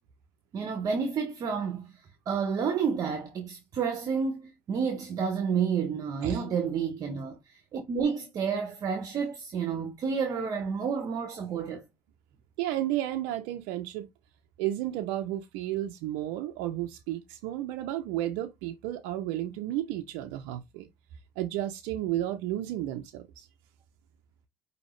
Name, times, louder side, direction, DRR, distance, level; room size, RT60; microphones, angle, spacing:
voice 1, 0.5-11.8, right 6 dB, 55° right, 0.9 m, -30 dB
voice 2, 12.6-14.1 14.6-20.9 21.4-23.5, right 13 dB, 85° right, 0.5 m, -32 dB
5.2 x 2.8 x 3.1 m
supercardioid pair, 75°, 7 cm